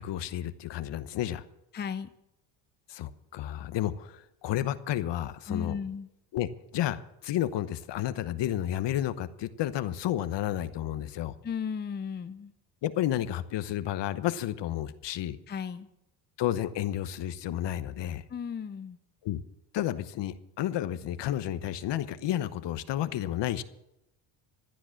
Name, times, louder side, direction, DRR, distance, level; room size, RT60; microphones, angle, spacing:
voice 1, 0.0-1.4 2.9-5.7 6.3-6.5 6.7-11.3 12.8-15.4 16.4-18.2 19.2-19.4 19.7-23.6, left 12 dB, 55° left, 14 dB, 1.0 m, -31 dB
voice 2, 1.7-2.1 5.5-6.1 11.4-12.5 15.5-15.9 18.3-19.0, left 7 dB, 20° left, 12 dB, 0.6 m, -35 dB
15.0 x 10.0 x 6.4 m, 0.84 s
cardioid pair, 95°, 50 cm